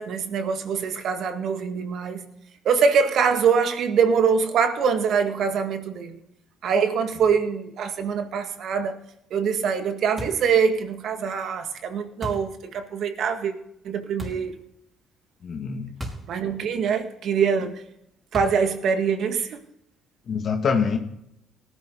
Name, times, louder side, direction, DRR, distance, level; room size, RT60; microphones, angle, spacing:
voice 1, 0.0-2.3 2.7-6.2 6.6-9.0 9.3-13.5 13.8-14.6 16.3-17.8 18.3-19.6, right 6 dB, 65° right, 7 dB, 1.9 m, -24 dB
sound 1, 10.2-10.6 12.2-12.6 14.2-14.5 16.0-16.4 16.6-16.7 18.3-18.7, equal, 25° right, 4.7 m, -35 dB
voice 2, 15.4-15.9 20.3-21.0, left 6 dB, 55° left, 2 dB, 2.1 m, -24 dB
18.5 x 11.0 x 3.9 m, 0.78 s
hypercardioid pair, 55°, 0 cm